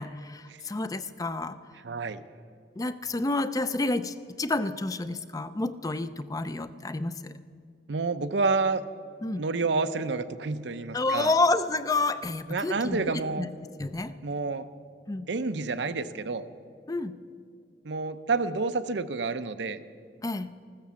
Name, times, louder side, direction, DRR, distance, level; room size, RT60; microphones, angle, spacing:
voice 1, 0.0-1.6 2.8-7.3 9.2-9.4 10.9-13.2 13.8-14.1 15.1-15.3 16.9-17.2 20.2-20.5, left 2 dB, 20° left, 13 dB, 0.5 m, -29 dB
voice 2, 1.8-2.2 7.9-8.8 9.4-11.3 12.5-13.5 14.2-14.7 15.3-16.5 17.8-19.8, right 3 dB, 75° right, 11 dB, 0.7 m, -29 dB
15.0 x 13.5 x 7.0 m, 2.2 s
head